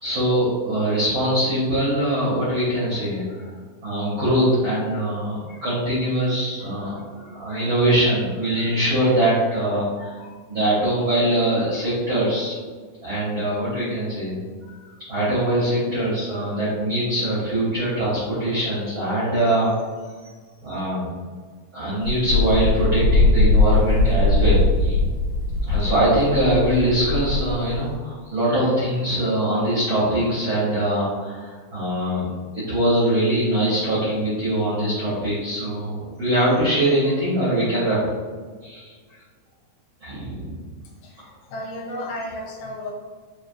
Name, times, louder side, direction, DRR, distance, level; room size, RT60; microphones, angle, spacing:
voice 1, 0.0-3.5 3.8-12.6 13.0-14.7 15.1-19.7 20.2-20.3 20.6-21.1 21.7-25.0 25.6-38.1 38.6-38.9 40.0-40.7, right 1 dB, 85° right, -10 dB, 1.1 m, -22 dB
Wind, 22.0-27.9, left 2 dB, 75° left, 2.5 m, -20 dB
voice 2, 41.5-42.9, left 1 dB, 90° left, -3 dB, 2.8 m, -33 dB
6.2 x 2.5 x 2.6 m, 1.5 s
omnidirectional pair, 4.4 m